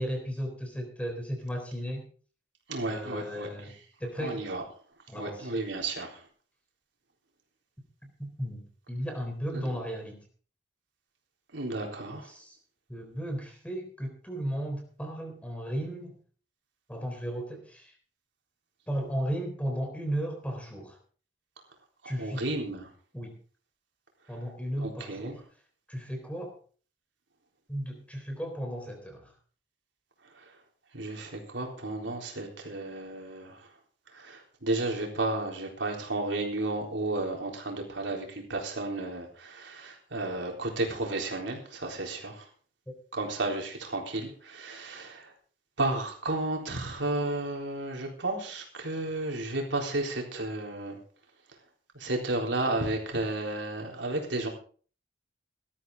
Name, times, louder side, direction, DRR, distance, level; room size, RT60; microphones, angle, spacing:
voice 1, 0.0-2.1 2.9-3.7 4.0-4.4 5.1-5.5 8.2-8.6 8.9-10.2 12.3-12.6 12.9-16.1 16.9-17.9 18.9-21.0 22.0-22.4 23.1-23.3 24.3-25.3 25.9-26.5 27.7-29.3, equal, 5° left, 3 dB, 3.8 m, -35 dB
voice 2, 2.7-3.7 4.2-4.6 5.1-6.3 9.5-9.7 11.5-12.3 22.0-22.9 24.8-25.4 30.3-30.5 30.9-33.7 34.1-42.5 43.1-45.3 45.8-51.0 51.9-54.5, right 2 dB, 85° right, 1 dB, 3.9 m, -33 dB
18.0 x 13.0 x 3.8 m, 0.42 s
head